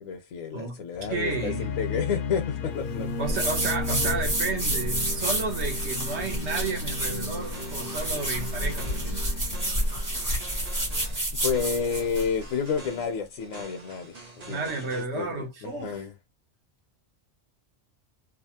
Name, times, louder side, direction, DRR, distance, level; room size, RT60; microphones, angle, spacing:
voice 1, 0.0-3.1 11.4-16.1, left 6 dB, 80° left, 1.0 m, -30 dB
sound 1, 0.9-11.0, left 4 dB, 55° left, 0.6 m, -35 dB
voice 2, 1.1-1.7 3.2-9.2 14.5-15.9, right 4 dB, 60° right, 1.2 m, -32 dB
sound 2, 3.3-12.3, right 1 dB, 15° right, 0.9 m, -29 dB
sound 3, 7.0-15.0, right 3 dB, 40° right, 0.7 m, -46 dB
2.8 x 2.3 x 2.8 m
omnidirectional pair, 1.4 m